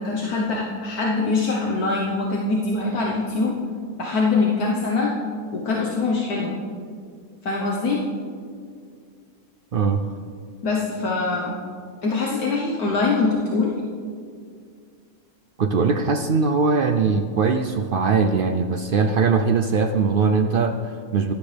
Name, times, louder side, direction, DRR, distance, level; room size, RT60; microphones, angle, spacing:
voice 1, 0.0-3.6 4.0-5.1 5.5-6.6 7.4-8.0 10.6-11.6 12.0-13.7, left 3 dB, 75° left, -3 dB, 1.6 m, -23 dB
voice 2, 15.6-21.3, right 5 dB, 80° right, 6 dB, 0.4 m, -21 dB
15.0 x 12.0 x 3.4 m, 2.1 s
omnidirectional pair, 1.6 m